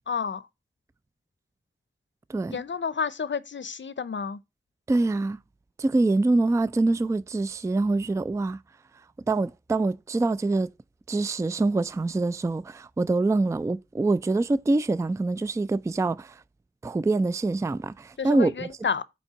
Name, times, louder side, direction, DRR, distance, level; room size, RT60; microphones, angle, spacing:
voice 1, 0.1-0.5 2.5-4.4 18.2-19.0, left 6 dB, 60° left, 0.6 m, -30 dB
voice 2, 4.9-5.4 5.8-8.6 9.3-10.7 11.1-16.4 16.8-18.7, right 2 dB, 15° right, 0.3 m, -25 dB
5.4 x 4.4 x 5.7 m
cardioid pair, 40°, 21 cm